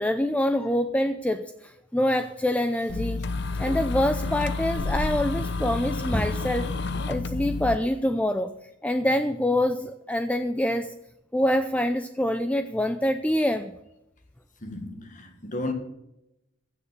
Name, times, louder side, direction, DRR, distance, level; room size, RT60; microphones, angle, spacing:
voice 1, 0.0-3.2 3.6-6.7 7.1-8.5 8.8-10.9 11.3-13.7, left 1 dB, 5° left, 0.5 m, -25 dB
sound 1, 2.9-7.8, left 3 dB, 60° left, 0.9 m, -29 dB
voice 2, 14.6-15.7, left 2 dB, 40° left, 1.8 m, -33 dB
16.0 x 7.1 x 6.8 m
head